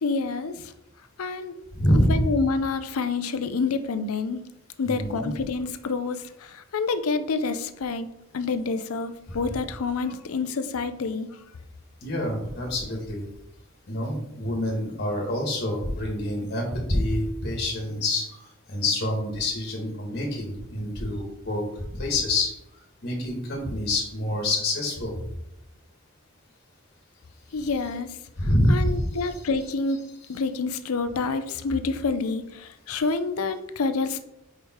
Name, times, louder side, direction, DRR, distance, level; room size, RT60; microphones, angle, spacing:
voice 1, 0.0-0.5 1.2-1.6 2.1-4.4 4.8-8.1 8.3-11.3 27.5-28.1 28.7-30.0 30.3-34.2, left 4 dB, 75° left, 11 dB, 0.5 m, -28 dB
voice 2, 1.7-2.3 4.8-5.3 12.0-13.2 13.9-22.5 23.0-25.2 28.4-29.4, left 1 dB, 45° left, 0 dB, 1.5 m, -26 dB
4.9 x 4.7 x 4.4 m, 0.85 s
head